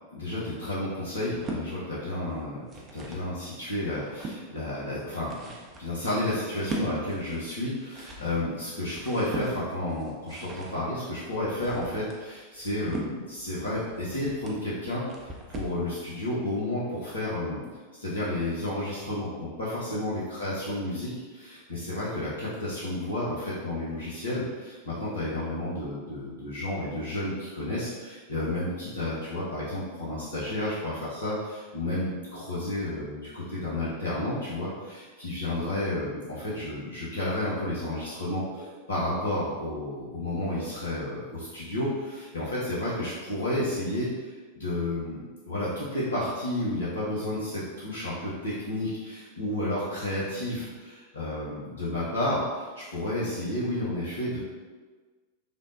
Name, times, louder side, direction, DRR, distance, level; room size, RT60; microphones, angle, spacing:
voice 1, 0.1-2.6 2.9-5.5 5.8-54.4, left 1 dB, 70° left, -9 dB, 0.6 m, -31 dB
sound 1, 1.3-1.7 2.4-3.3 3.8-4.4 5.0-15.8, right 2 dB, 25° right, 0.4 m, -40 dB
3.3 x 2.0 x 2.5 m, 1.4 s
figure-of-eight pair, 90°, 0 cm